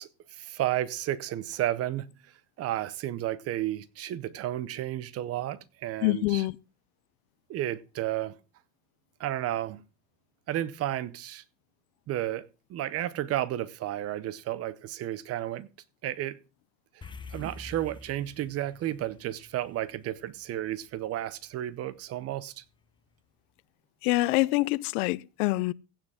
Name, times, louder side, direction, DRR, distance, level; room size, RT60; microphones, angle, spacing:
voice 1, 0.0-2.1 2.6-6.4 7.5-8.4 9.2-9.8 10.5-11.4 12.1-15.7 16.0-16.4 17.3-22.6, right 13 dB, 35° right, 0.7 m, -32 dB
voice 2, 6.0-6.6 24.0-25.7, left 20 dB, 85° left, 0.6 m, -25 dB
sound 1, 17.0-21.5, left 3 dB, 10° left, 0.7 m, -47 dB
16.0 x 7.4 x 3.5 m
cardioid pair, 150°, 42 cm